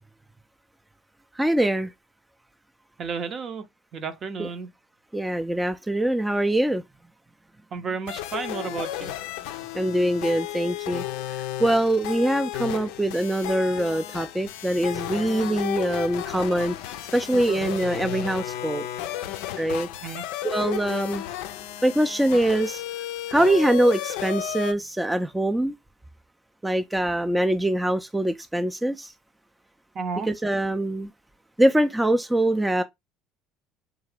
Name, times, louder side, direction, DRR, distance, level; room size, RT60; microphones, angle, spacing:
voice 1, 1.4-1.9 4.4-4.5 5.1-6.8 9.7-16.7 17.1-18.9 19.6-19.9 20.4-21.2 21.8-22.8 23.3-25.7 26.6-29.1 30.3-31.1 31.6-32.8, right 1 dB, 10° right, 0.4 m, -23 dB
voice 2, 3.0-3.6 3.9-4.7 7.7-9.1 20.0-20.3 29.9-30.3, right 5 dB, 45° right, 0.7 m, -32 dB
sound 1, 8.1-24.7, left 12 dB, 70° left, 0.4 m, -33 dB
3.6 x 2.8 x 3.3 m
hypercardioid pair, 65°, 0 cm